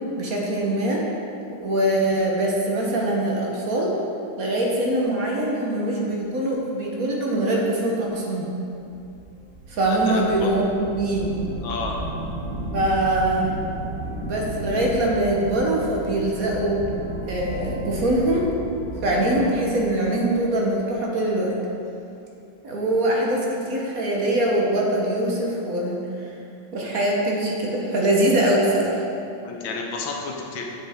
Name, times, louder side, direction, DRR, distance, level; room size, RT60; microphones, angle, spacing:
voice 1, 0.1-1.0 1.6-3.9 4.4-8.5 9.7-11.3 12.7-13.6 14.3-16.8 17.3-18.5 19.0-21.5 22.6-26.0 26.7-29.0, right 1 dB, 50° right, -2 dB, 1.3 m, -23 dB
sound 1, 8.9-20.9, right 1 dB, 75° right, 2.4 m, -34 dB
voice 2, 9.9-10.5 11.6-12.0 29.4-30.7, left 4 dB, 75° left, 0 dB, 1.7 m, -31 dB
9.1 x 6.6 x 3.6 m, 2.7 s
omnidirectional pair, 2.2 m